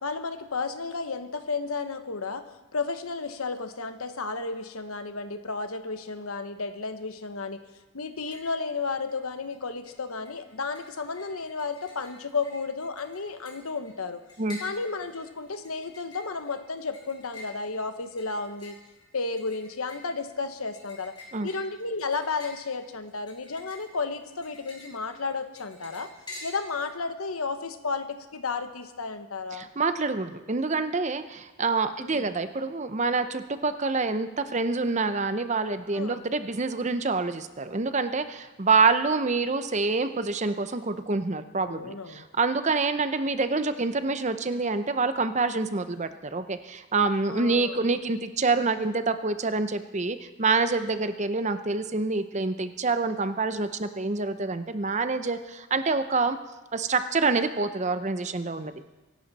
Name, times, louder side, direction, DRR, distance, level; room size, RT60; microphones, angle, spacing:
voice 1, 0.0-2.4 2.7-7.6 7.9-14.2 14.6-18.8 19.1-21.1 21.4-26.1 26.4-29.7 32.0-32.3 35.9-36.2 41.6-42.2 47.3-47.8, left 4 dB, 90° left, 9 dB, 1.2 m, -33 dB
sound 1, 8.0-8.6 8.9-9.6 9.8-26.9, left 2 dB, 20° left, 3.4 m, -49 dB
voice 2, 29.5-56.4 56.7-58.7, right 3 dB, 35° right, 10 dB, 0.7 m, -27 dB
24.0 x 11.5 x 4.2 m, 1.1 s
head